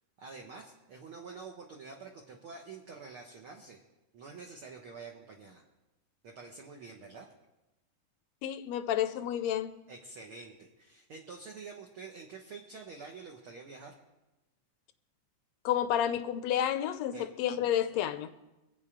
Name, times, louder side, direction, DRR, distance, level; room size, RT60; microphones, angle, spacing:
voice 1, 0.2-3.8 4.1-5.6 6.2-7.3 9.9-13.9 17.1-17.3, right 4 dB, 55° right, 1 dB, 1.6 m, -47 dB
voice 2, 8.4-9.7 15.6-18.3, left 10 dB, 75° left, 10 dB, 1.6 m, -30 dB
24.0 x 8.2 x 5.0 m, 1.0 s
omnidirectional pair, 3.7 m